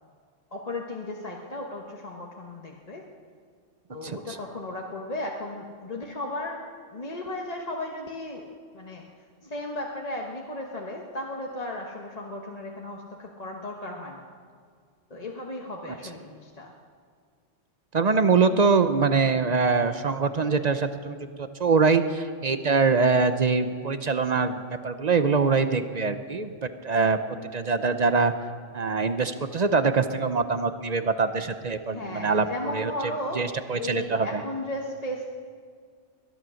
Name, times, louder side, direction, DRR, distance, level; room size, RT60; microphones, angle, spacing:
voice 1, 0.5-3.0 3.9-8.5 8.7-9.0 9.4-14.3 15.1-16.7 31.9-35.2, left 1 dB, 35° left, 0 dB, 1.2 m, -35 dB
voice 2, 17.9-26.5 26.8-27.2 27.5-28.3 28.7-32.4 32.7-32.9 33.4-34.4, right 4 dB, 45° right, 10 dB, 0.7 m, -23 dB
21.5 x 10.5 x 6.3 m, 2.1 s
omnidirectional pair, 1.2 m